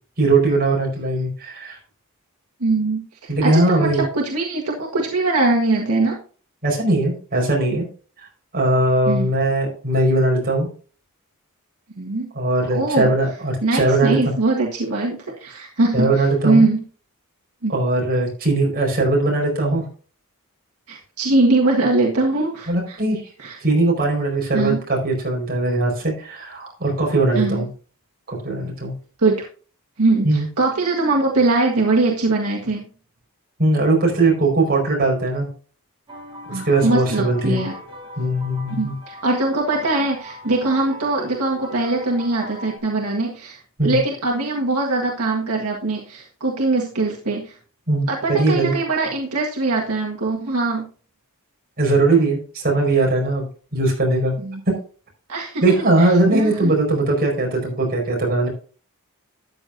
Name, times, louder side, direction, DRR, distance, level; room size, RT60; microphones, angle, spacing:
voice 1, 0.2-1.8 3.3-4.1 6.6-7.9 8.5-10.7 12.3-14.2 15.9-16.6 17.7-19.8 22.7-23.2 23.6-27.7 28.3-28.9 30.2-30.5 33.6-35.5 36.5-37.6 38.2-38.9 43.8-44.0 47.9-48.8 51.8-53.4 53.7-54.3 54.7-54.8 55.6-58.5, right 2 dB, 45° right, -1 dB, 5.1 m, -19 dB
voice 2, 2.6-6.2 9.0-9.3 12.0-12.3 12.7-13.1 13.6-16.8 17.6-17.7 20.9-23.0 23.4-23.6 24.5-24.8 27.3-27.6 29.2-29.5 30.0-32.8 36.5-37.7 38.8-47.5 48.1-50.8 54.4-54.6 55.3-55.6 56.0-56.7, right 2 dB, 80° right, -1 dB, 1.7 m, -21 dB
sound 1, 36.1-42.8, left 1 dB, 25° right, 4.8 m, -39 dB
13.0 x 9.2 x 2.7 m, 0.39 s
head